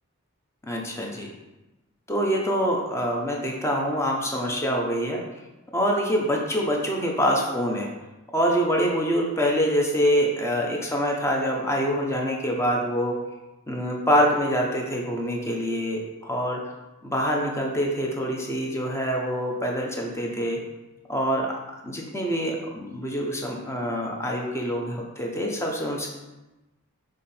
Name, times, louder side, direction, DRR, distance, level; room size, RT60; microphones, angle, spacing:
voice 1, 0.6-1.3 2.1-5.2 5.7-7.9 8.3-13.1 13.7-16.6 17.0-20.6 21.1-21.6 21.8-26.1, equal, 10° left, 0 dB, 0.8 m, -25 dB
5.9 x 3.7 x 4.3 m, 1.1 s
head